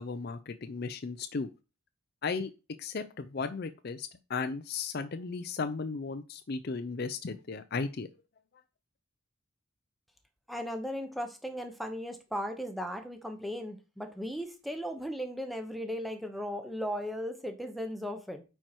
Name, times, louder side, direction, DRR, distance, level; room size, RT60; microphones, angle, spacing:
voice 1, 0.0-1.5 2.2-2.5 2.8-8.1, left 4 dB, 50° left, 0.5 m, -35 dB
voice 2, 10.5-18.4, equal, ahead, 0.9 m, -37 dB
9.0 x 4.5 x 4.4 m
head